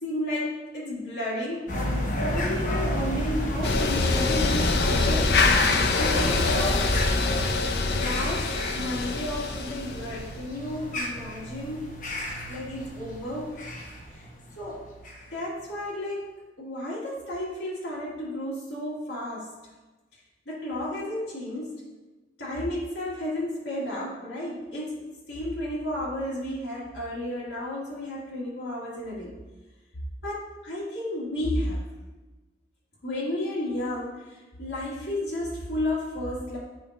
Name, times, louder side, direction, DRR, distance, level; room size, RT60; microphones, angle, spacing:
voice 1, 0.0-5.4 6.0-6.9 7.9-12.0 12.5-13.7 14.1-14.2 14.6-14.8 15.3-16.2 16.6-19.5 20.5-21.9 22.4-29.4 30.2-31.8 33.0-36.6, left 1 dB, 85° left, -8 dB, 2.0 m, -32 dB
sound 1, 1.7-15.4, equal, 45° left, 1.0 m, -32 dB
sound 2, 3.6-10.5, left 3 dB, 65° left, 0.5 m, -25 dB
8.4 x 4.7 x 2.5 m, 1.2 s
head